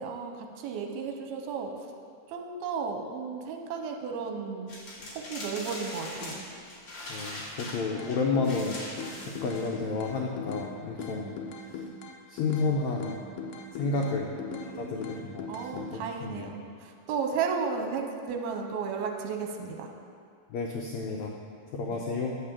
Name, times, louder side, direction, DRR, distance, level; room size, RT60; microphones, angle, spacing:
voice 1, 0.0-1.9 2.3-4.7 5.1-6.5 14.0-15.2 15.5-19.9 21.9-22.0, right 5 dB, 85° right, 3 dB, 2.8 m, -34 dB
sound 1, 4.7-10.1, left 1 dB, 35° left, 2.2 m, -41 dB
voice 2, 7.1-11.3 12.3-13.3 13.7-14.4 14.6-15.5 15.7-16.5 20.5-21.3 21.7-22.4, left 4 dB, 90° left, -1 dB, 1.5 m, -31 dB
sound 2, 8.0-8.7 9.0-10.7 11.0-12.7 13.0-14.7 15.0-15.9, left 5 dB, 70° left, 2.2 m, -39 dB
10.5 x 7.4 x 7.4 m, 2.3 s
omnidirectional pair, 4.4 m